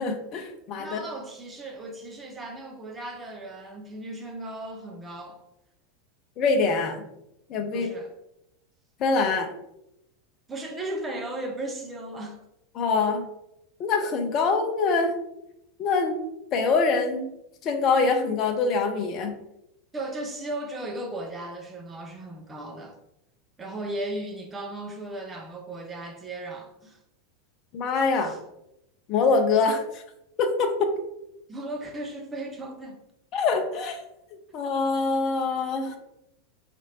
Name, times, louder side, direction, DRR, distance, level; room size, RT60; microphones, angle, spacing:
voice 1, 0.0-1.0 6.4-7.0 7.5-7.9 9.0-9.5 12.7-13.3 13.8-15.1 15.8-16.2 16.5-17.3 17.6-19.4 27.7-28.4 29.1-30.0 30.4-30.9 33.3-34.0 34.5-36.0, left 4 dB, 40° left, 5 dB, 0.6 m, -24 dB
voice 2, 0.8-5.4 7.7-8.1 10.5-12.4 19.9-23.0 23.6-27.0 28.2-28.4 31.5-33.0, right 1 dB, 20° right, 2 dB, 0.6 m, -36 dB
4.3 x 2.5 x 2.8 m, 0.84 s
figure-of-eight pair, 85°, 0 cm